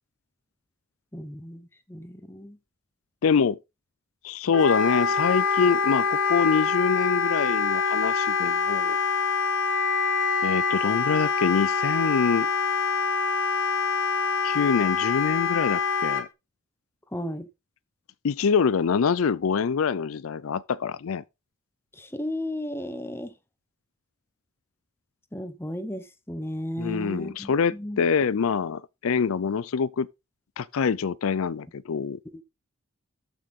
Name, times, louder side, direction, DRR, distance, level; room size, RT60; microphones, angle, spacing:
voice 1, 1.1-2.6 17.1-17.5 21.9-23.3 25.3-28.0 32.3-32.4, left 1 dB, 10° left, 1.0 m, -34 dB
voice 2, 3.2-3.6 4.2-9.0 10.4-12.5 14.4-16.3 18.2-21.2 26.8-30.1 30.6-32.2, left 6 dB, 75° left, 0.4 m, -25 dB
Wind instrument woodwind instrument, 4.5-16.2, left 5 dB, 60° left, 1.8 m, -25 dB
13.5 x 6.1 x 3.7 m
head